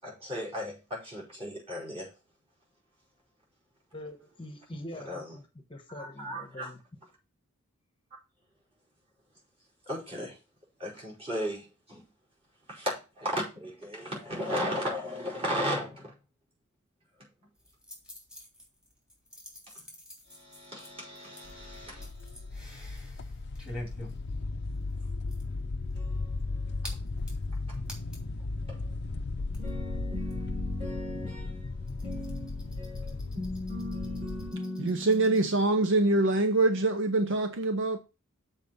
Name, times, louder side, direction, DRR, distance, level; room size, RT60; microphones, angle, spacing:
voice 1, 0.0-2.1 5.1-5.3 5.9-6.7 9.9-10.4 10.8-12.0 12.7-16.1 20.3-22.3 26.0-26.3 27.7-27.8 28.6-35.8 36.1-36.3 37.6-37.7, equal, 25° right, 4.9 m, -37 dB
voice 2, 3.9-5.4 5.7-6.8, left 1 dB, 25° left, 1.1 m, -43 dB
sound 1, 17.5-28.4 28.7-28.8 29.0-35.4, left 1 dB, 5° right, 2.6 m, -49 dB
sound 2, 21.4-34.5, left 3 dB, 50° left, 0.5 m, -36 dB
voice 3, 34.8-38.0, right 2 dB, 60° right, 0.7 m, -25 dB
7.2 x 4.5 x 6.9 m
head